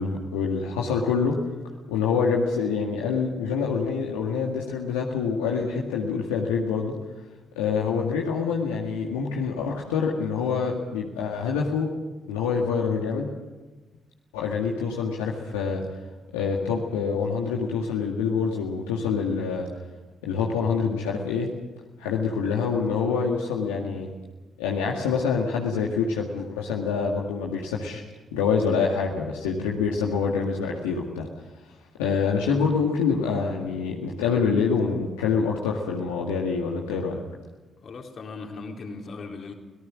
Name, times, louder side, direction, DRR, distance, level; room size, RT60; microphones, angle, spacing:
voice 1, 0.0-1.4 1.9-6.9 7.6-11.9 12.3-13.3 14.3-15.8 16.3-19.7 20.2-21.5 22.0-24.1 24.6-28.0 28.3-31.3 32.0-37.2, left 5 dB, 80° left, -2 dB, 1.9 m, -26 dB
voice 2, 37.8-39.5, left 3 dB, 55° left, 2 dB, 3.7 m, -38 dB
25.0 x 18.0 x 6.3 m, 1.2 s
hypercardioid pair, 45°, 0 cm